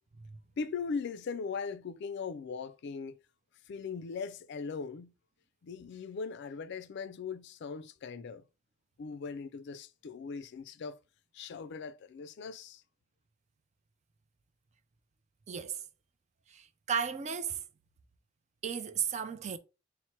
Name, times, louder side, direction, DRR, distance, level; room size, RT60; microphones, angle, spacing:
voice 1, 0.6-3.2 3.7-5.1 5.6-8.4 9.0-11.0 11.3-12.8, left 5 dB, 60° left, 0.4 m, -39 dB
voice 2, 15.5-15.9 16.5-17.6 18.6-19.6, right 7 dB, 35° right, 0.4 m, -35 dB
4.4 x 2.1 x 4.4 m
head